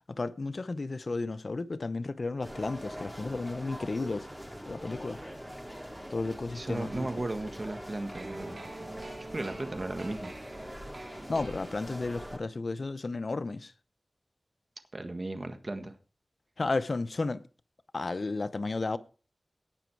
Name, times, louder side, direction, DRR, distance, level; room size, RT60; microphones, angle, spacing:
voice 1, 0.1-4.3 4.7-5.2 6.1-7.1 11.3-13.7 16.6-17.4 17.9-19.0, left 3 dB, 65° left, 0.8 m, -33 dB
sound 1, 2.4-12.4, equal, 5° right, 4.1 m, -43 dB
voice 2, 6.5-8.9 9.3-10.3 14.9-15.9, right 2 dB, 50° right, 1.5 m, -36 dB
sound 2, 8.1-12.2, right 2 dB, 85° right, 3.0 m, -45 dB
17.5 x 6.3 x 4.6 m
cardioid pair, 45°, 0 cm